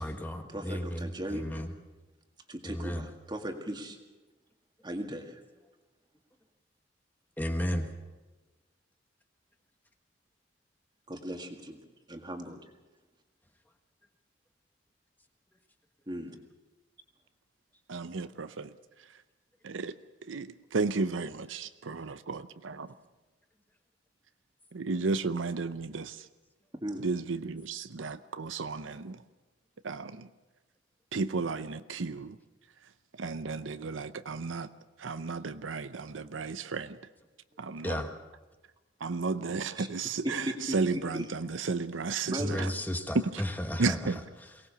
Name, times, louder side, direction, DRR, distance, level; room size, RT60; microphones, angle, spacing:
voice 1, 0.0-1.7 2.6-3.1 7.4-7.9 37.8-38.1 42.4-44.1, equal, 10° left, 5 dB, 1.4 m, -33 dB
voice 2, 0.5-1.4 2.5-4.0 4.8-5.4 11.1-11.8 12.1-12.6 16.1-16.4 26.8-27.1 39.8-39.9 40.2-41.3 42.3-42.8, equal, 20° right, 4 dB, 1.9 m, -37 dB
voice 3, 17.9-18.7 19.6-20.0 20.3-22.5 24.7-26.3 27.0-29.2 29.8-30.3 31.1-32.4 33.2-34.7 35.0-37.0 37.6-38.0 39.0-42.7 43.1-43.4 43.8-44.2, right 4 dB, 80° right, 12 dB, 0.7 m, -33 dB
23.0 x 18.5 x 6.9 m, 1.2 s
head